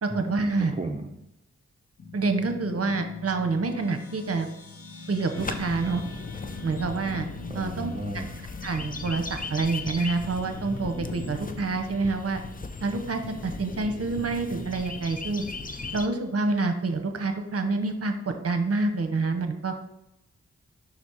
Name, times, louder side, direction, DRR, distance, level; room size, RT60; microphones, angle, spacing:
voice 1, 0.0-0.8 2.1-4.5 5.1-6.0 6.6-7.3 7.5-8.2 8.6-12.4 12.8-15.4 15.9-19.7, right 3 dB, 55° right, 6 dB, 0.9 m, -27 dB
voice 2, 0.6-1.1 7.5-8.3, right 2 dB, 25° right, 2 dB, 0.7 m, -34 dB
sound 1, 2.0-12.8, left 5 dB, 50° left, 1.0 m, -43 dB
sound 2, 5.3-16.1, left 3 dB, 30° left, 0.6 m, -37 dB
6.1 x 4.1 x 4.7 m, 0.87 s
wide cardioid pair, 70°, 29 cm